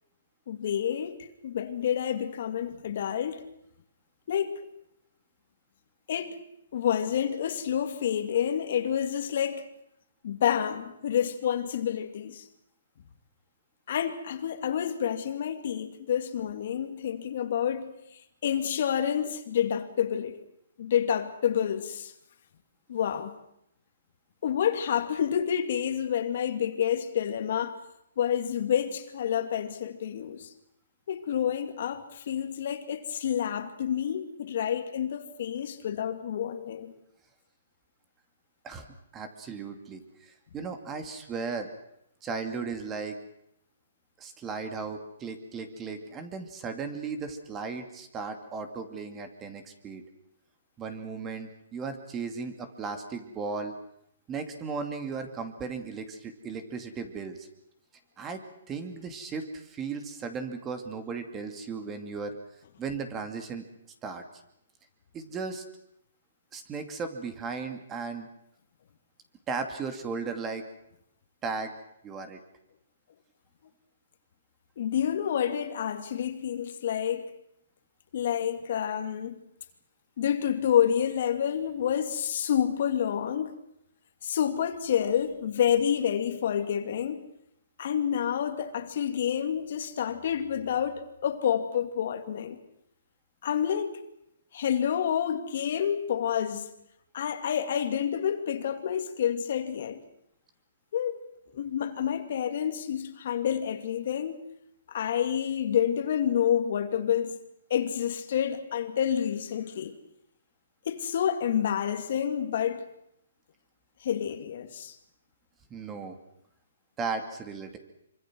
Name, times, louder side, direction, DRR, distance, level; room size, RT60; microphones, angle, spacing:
voice 1, 0.5-3.4 4.3-4.6 6.1-6.4 6.7-9.7 10.2-12.4 13.9-18.0 18.4-20.4 20.8-22.1 22.9-23.4 24.4-27.8 28.2-30.5 31.1-36.9 74.8-77.3 78.1-79.4 80.2-83.5 84.2-87.2 87.8-92.6 93.4-94.0 94.5-96.7 97.1-100.0 100.9-101.2 101.5-104.4 104.9-107.4 107.7-110.0 110.9-112.8 114.0-115.0, left 9 dB, 55° left, 2.4 m, -28 dB
voice 2, 39.1-41.7 42.2-43.2 44.2-50.0 50.8-53.7 54.3-57.5 58.2-58.4 58.7-62.4 62.8-63.6 64.0-64.2 65.1-65.6 66.5-68.3 69.5-70.6 71.4-71.7 72.0-72.4 115.7-116.2 117.0-117.8, right 4 dB, 15° right, 2.5 m, -36 dB
25.5 x 25.0 x 6.3 m
hypercardioid pair, 155°, 0 cm